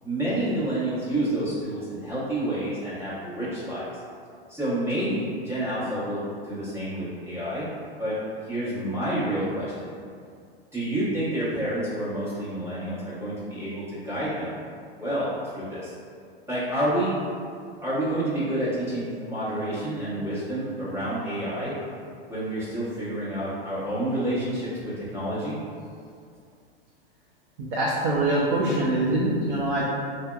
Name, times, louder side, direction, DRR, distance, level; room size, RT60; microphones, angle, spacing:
voice 1, 0.0-3.9 4.5-7.7 8.0-8.2 8.5-10.0 10.7-14.5 15.0-15.9 16.5-17.2 17.8-21.7 22.3-25.6, right 1 dB, 10° right, -11 dB, 0.9 m, -29 dB
voice 2, 27.7-29.9, right 1 dB, 60° right, -6 dB, 0.6 m, -24 dB
3.3 x 2.1 x 2.3 m, 2.3 s
hypercardioid pair, 115°, 30 cm